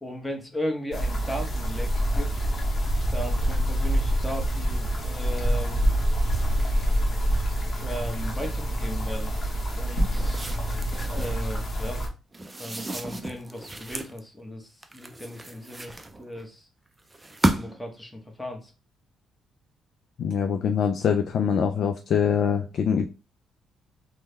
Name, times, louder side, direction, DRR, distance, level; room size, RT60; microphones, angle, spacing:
voice 1, 0.0-2.5 3.1-5.9 7.8-9.3 9.7-10.4 11.0-12.0 12.6-16.7 17.4-18.7, equal, 10° left, 2 dB, 1.0 m, -36 dB
sound 1, 0.9-12.1, equal, 40° left, 1.0 m, -26 dB
sound 2, 9.8-11.5 12.3-14.2 14.8-16.4 17.1-17.9, right 1 dB, 15° right, 0.4 m, -32 dB
voice 2, 20.2-23.1, left 7 dB, 65° left, 6 dB, 0.3 m, -24 dB
3.4 x 2.1 x 3.2 m, 0.31 s
cardioid pair, 90°, 0 cm